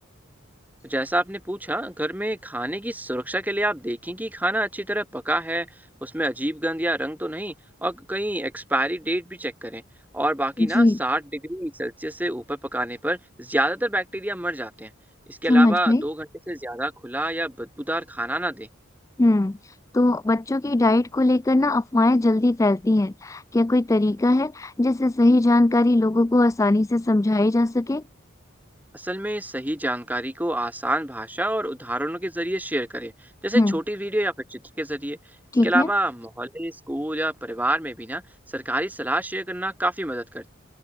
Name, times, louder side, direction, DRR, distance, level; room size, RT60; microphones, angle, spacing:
voice 1, 0.8-5.7 6.0-7.5 7.8-9.8 10.1-14.9 15.3-18.7 28.9-33.1 33.4-35.2 35.6-38.2 38.5-40.5, right 1 dB, 10° right, 2.6 m, -27 dB
voice 2, 10.6-11.0 15.5-16.0 19.2-28.0 33.5-33.7 35.5-35.9, left 2 dB, 15° left, 0.4 m, -20 dB
open air
head